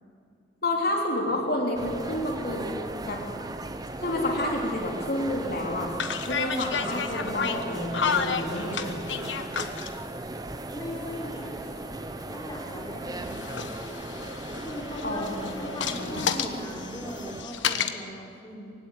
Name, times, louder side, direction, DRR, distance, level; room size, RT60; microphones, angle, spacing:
voice 1, 0.6-2.8 3.1-3.2 4.0-5.9 6.3-9.2 15.0-16.4, left 1 dB, 55° left, 0 dB, 3.4 m, -30 dB
sound 1, 1.8-17.4, right 2 dB, 20° right, 0.9 m, -37 dB
sound 2, 4.9-5.2 5.9-10.0 11.0-12.7 13.1-17.9, left 6 dB, 90° left, 1.4 m, -32 dB
voice 2, 10.6-11.8 12.3-13.5 14.5-18.7, equal, 25° left, -1 dB, 4.1 m, -39 dB
23.0 x 16.5 x 9.9 m, 2.6 s
head